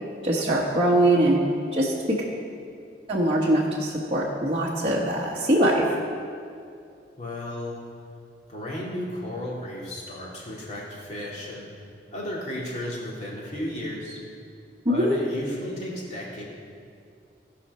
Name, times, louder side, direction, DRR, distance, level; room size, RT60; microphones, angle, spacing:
voice 1, 0.2-1.4 1.7-2.2 3.1-6.0 14.8-15.1, right 1 dB, 30° right, -5 dB, 1.1 m, -22 dB
voice 2, 7.2-7.8 8.5-11.8 12.1-14.2 14.9-16.4, left 1 dB, 40° left, -5 dB, 2.5 m, -34 dB
16.5 x 5.8 x 5.5 m, 2.4 s
head